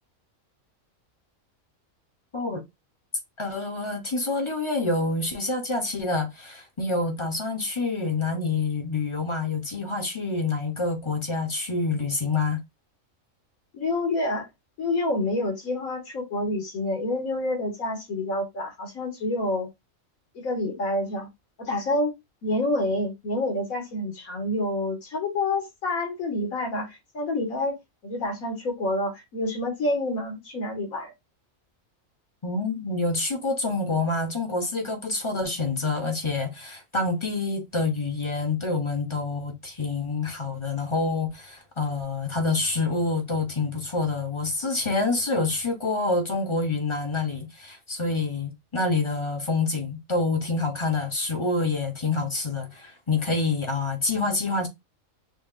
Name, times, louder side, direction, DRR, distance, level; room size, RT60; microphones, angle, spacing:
voice 1, 3.4-12.6 32.4-54.7, left 3 dB, 30° left, 0.5 m, -27 dB
voice 2, 13.7-14.5 14.8-19.7 20.4-21.3 21.6-22.1 22.4-27.8 28.0-31.1, left 2 dB, 85° left, 1.8 m, -28 dB
6.2 x 2.2 x 2.4 m
omnidirectional pair, 1.4 m